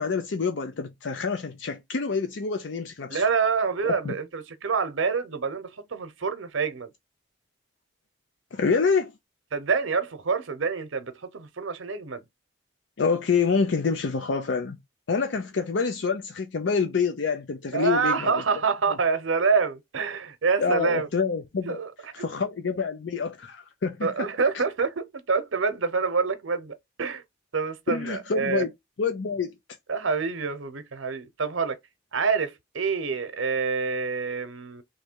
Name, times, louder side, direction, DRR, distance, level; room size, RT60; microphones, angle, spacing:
voice 1, 0.0-3.2 3.8-4.1 8.5-9.1 13.0-14.8 15.1-18.4 20.6-21.8 22.1-24.1 27.9-28.7 29.0-29.6, left 5 dB, 70° left, 0.5 m, -27 dB
voice 2, 3.1-6.9 9.5-12.2 17.7-21.1 21.7-21.9 22.2-22.3 24.0-27.2 27.5-28.6 29.9-31.8 32.1-34.8, right 5 dB, 90° right, 0.8 m, -27 dB
3.2 x 2.7 x 4.5 m
head